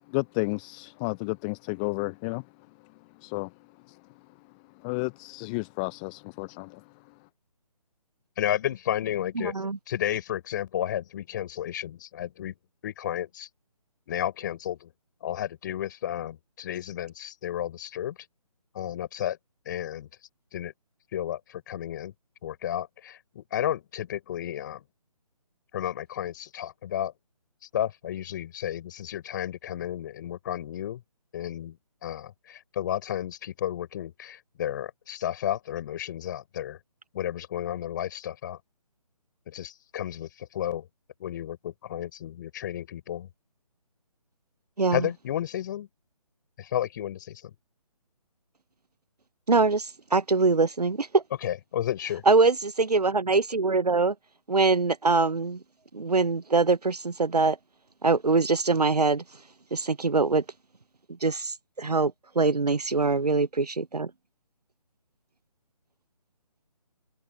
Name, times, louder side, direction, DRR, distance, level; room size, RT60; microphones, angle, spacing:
voice 1, 0.1-2.5 3.2-3.5 3.9-4.0 4.7-7.1, left 32 dB, 10° left, 0.7 m, -32 dB
voice 2, 8.4-9.5 9.9-12.6 12.8-13.5 14.1-14.9 15.2-18.2 18.7-19.4 19.6-20.1 20.5-20.7 21.1-22.1 22.4-24.8 25.7-27.1 27.7-31.0 31.3-36.8 37.1-38.6 39.5-40.9 41.2-43.3 44.9-45.9 46.6-47.4 51.4-52.2, left 11 dB, 30° left, 4.5 m, -32 dB
voice 3, 9.4-9.8 44.8-45.1 49.5-51.2 52.3-54.1 54.5-55.6 55.9-57.6 58.0-59.2 59.7-60.4 61.2-64.1, right 3 dB, 85° right, 0.7 m, -23 dB
open air
figure-of-eight pair, 145°, 20 cm